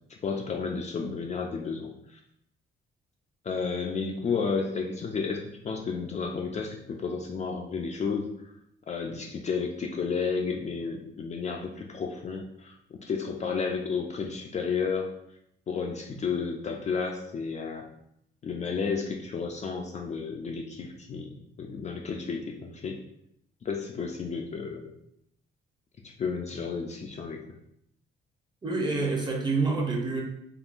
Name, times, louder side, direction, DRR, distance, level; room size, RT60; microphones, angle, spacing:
voice 1, 0.1-2.2 3.4-8.3 8.9-15.1 15.7-17.9 18.4-23.0 23.6-24.9 26.0-27.4, left 5 dB, 35° left, 1 dB, 0.4 m, -32 dB
voice 2, 28.6-30.2, right 3 dB, 20° right, 0 dB, 0.7 m, -27 dB
3.6 x 2.2 x 2.5 m, 0.76 s
cardioid pair, 90°, 20 cm